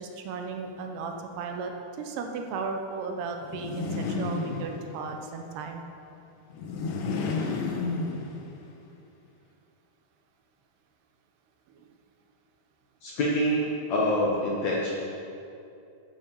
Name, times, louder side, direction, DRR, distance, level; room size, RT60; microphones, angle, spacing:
voice 1, 0.0-5.8 11.8-11.9, right 4 dB, 80° right, 4 dB, 3.0 m, -35 dB
sound 1, 3.4-5.1 6.5-8.7, left 4 dB, 85° left, 3.5 m, -31 dB
voice 2, 13.0-13.6 13.9-15.0, equal, 60° left, -4 dB, 2.0 m, -25 dB
9.8 x 9.6 x 7.5 m, 2.7 s
omnidirectional pair, 4.7 m